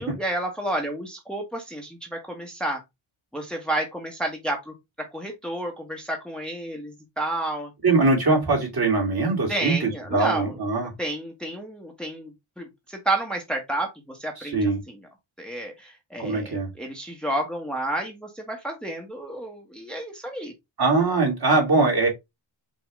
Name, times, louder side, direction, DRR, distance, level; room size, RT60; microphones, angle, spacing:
voice 1, 0.0-2.8 3.3-7.7 9.5-10.5 11.0-14.7 15.4-20.5, right 1 dB, ahead, 1.2 m, -31 dB
voice 2, 7.8-10.9 14.4-14.8 16.2-16.7 20.8-22.1, right 3 dB, 50° right, 2.7 m, -22 dB
5.2 x 2.8 x 3.5 m
cardioid pair, 75°, 49 cm